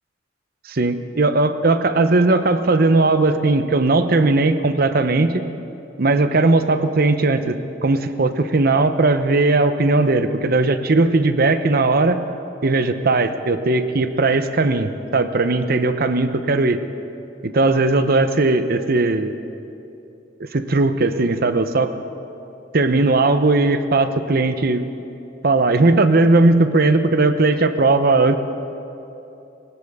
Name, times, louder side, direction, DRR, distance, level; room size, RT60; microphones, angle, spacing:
voice 1, 0.7-5.5 6.0-12.2 12.6-16.8 17.4-19.3 20.5-21.9 22.7-24.8 25.4-28.4, right 2 dB, 55° right, 10 dB, 0.8 m, -18 dB
20.5 x 18.5 x 3.6 m, 2.8 s
head